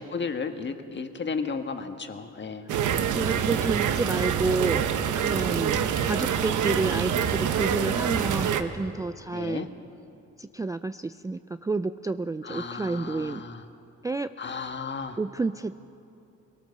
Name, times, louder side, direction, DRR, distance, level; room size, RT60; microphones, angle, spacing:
voice 1, 0.0-2.7 9.3-9.7 12.4-13.6 14.4-15.2, left 5 dB, 35° left, 7 dB, 1.5 m, -34 dB
sound 1, 2.7-8.6, right 8 dB, 75° right, 1.2 m, -26 dB
voice 2, 3.1-4.9 5.2-9.7 10.4-13.5 14.0-14.3 15.2-15.8, right 3 dB, 10° right, 11 dB, 0.4 m, -30 dB
23.5 x 18.0 x 6.7 m, 2.8 s
cardioid pair, 90°, 30 cm